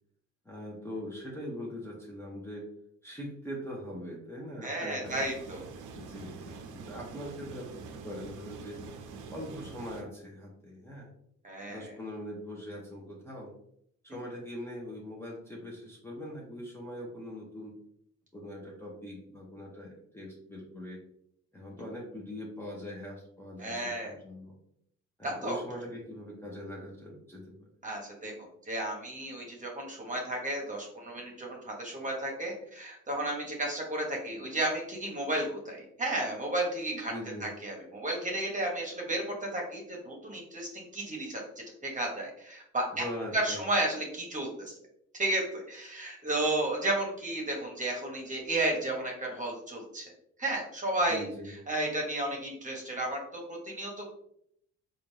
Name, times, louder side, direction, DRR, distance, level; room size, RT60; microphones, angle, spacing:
voice 1, 0.4-2.7 3.0-5.2 5.9-8.8 9.3-11.1 11.7-13.5 14.0-17.8 18.3-21.0 21.5-24.5 25.2-27.7 37.1-37.5 42.9-43.6 51.1-51.5, equal, 10° left, -3 dB, 1.0 m, -42 dB
voice 2, 4.6-5.7 11.4-11.9 23.6-24.1 25.2-25.6 27.8-28.3 28.7-37.1 37.4-41.4 41.8-43.0 43.3-44.7 45.1-50.1 50.4-54.0, right 1 dB, 25° right, 0 dB, 1.3 m, -33 dB
sound 1, 5.0-10.0, right 4 dB, 90° right, 0.6 m, -45 dB
4.2 x 2.6 x 3.3 m, 0.70 s
cardioid pair, 90°, 30 cm